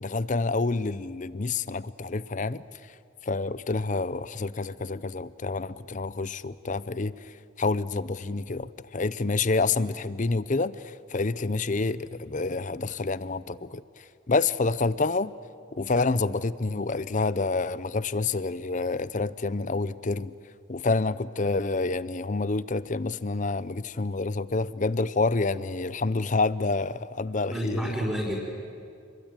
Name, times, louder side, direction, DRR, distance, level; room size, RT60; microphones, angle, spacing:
voice 1, 0.0-2.6 3.3-7.1 7.6-13.8 14.3-15.3 15.8-20.3 20.7-27.9, left 3 dB, 40° left, 17 dB, 0.6 m, -28 dB
voice 2, 27.4-28.4, equal, 5° right, -3 dB, 5.2 m, -30 dB
29.5 x 22.0 x 9.1 m, 2.4 s
head